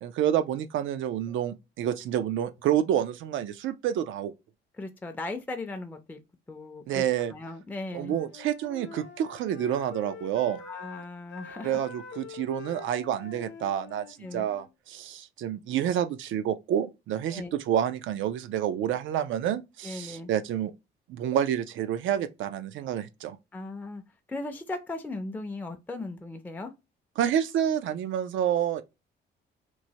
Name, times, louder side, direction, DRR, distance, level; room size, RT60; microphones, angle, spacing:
voice 1, 0.0-4.3 6.9-7.3 7.9-10.6 11.6-20.7 21.1-23.4 27.2-28.8, right 10 dB, 75° right, 0.4 m, -28 dB
voice 2, 4.8-6.2 6.5-8.2 10.6-11.8 14.2-14.5 17.3-17.5 19.8-20.3 23.5-24.0 24.3-26.7, left 2 dB, 10° left, 0.5 m, -37 dB
Wind instrument woodwind instrument, 7.9-14.7, left 5 dB, 65° left, 0.7 m, -46 dB
3.0 x 2.1 x 2.7 m
cardioid pair, 90°, 20 cm